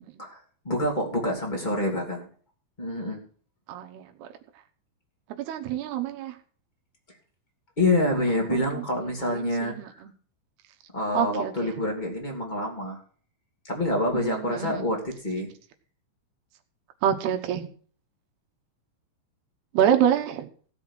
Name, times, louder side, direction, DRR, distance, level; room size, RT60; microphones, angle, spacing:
voice 1, 0.2-2.3 2.8-3.2 7.8-9.7 10.9-13.0 13.6-15.5, left 1 dB, 15° left, 0 dB, 2.0 m, -27 dB
voice 2, 3.7-4.3 4.5-4.6 5.4-6.4 8.4-10.1 11.1-11.7 14.1-14.9 17.0-17.7 19.7-20.5, right 9 dB, 70° right, 6 dB, 2.7 m, -27 dB
16.5 x 5.6 x 6.3 m, 0.44 s
omnidirectional pair, 5.4 m